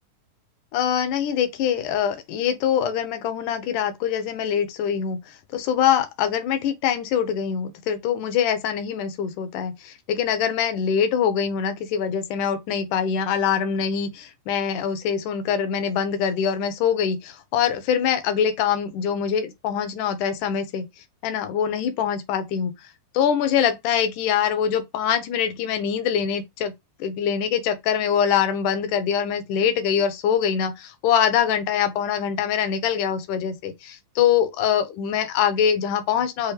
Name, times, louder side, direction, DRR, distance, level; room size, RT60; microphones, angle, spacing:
voice 1, 0.7-20.8 21.2-22.7 23.1-26.7 27.0-36.5, left 8 dB, 75° left, 2.1 m, -24 dB
6.2 x 2.6 x 3.2 m
omnidirectional pair, 4.0 m